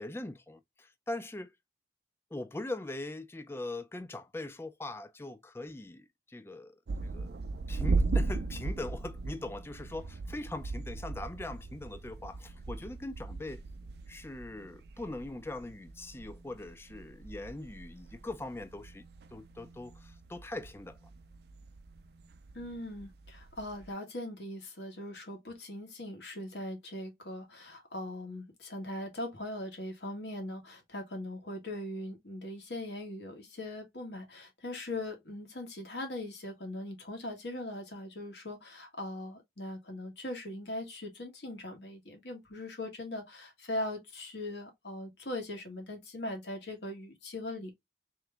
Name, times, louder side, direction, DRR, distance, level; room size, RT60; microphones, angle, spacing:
voice 1, 0.0-1.5 2.3-6.8 7.0-7.4 7.7-13.6 14.1-21.0, left 2 dB, 15° left, 0.4 m, -41 dB
sound 1, 6.9-23.9, right 3 dB, 60° right, 0.4 m, -38 dB
voice 2, 22.5-47.7, left 1 dB, 65° left, 1.5 m, -40 dB
3.3 x 3.1 x 3.4 m
head